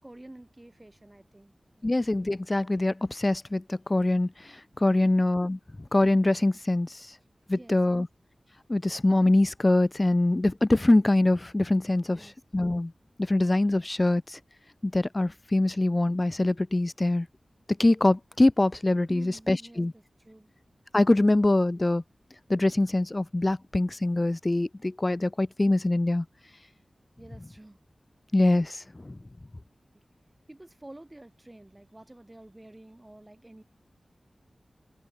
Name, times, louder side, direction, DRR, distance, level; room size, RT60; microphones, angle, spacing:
voice 1, 0.0-1.9 5.0-5.2 7.5-8.1 12.1-12.3 19.1-20.5 27.2-27.8 30.5-33.6, right 1 dB, 20° right, 6.9 m, -49 dB
voice 2, 1.8-7.0 7.5-8.1 8.7-12.2 12.5-12.9 13.3-14.4 14.8-17.3 17.8-19.9 20.9-22.0 22.5-26.3 28.3-29.2, left 2 dB, 30° left, 0.4 m, -24 dB
wide cardioid pair, 70°, 0 cm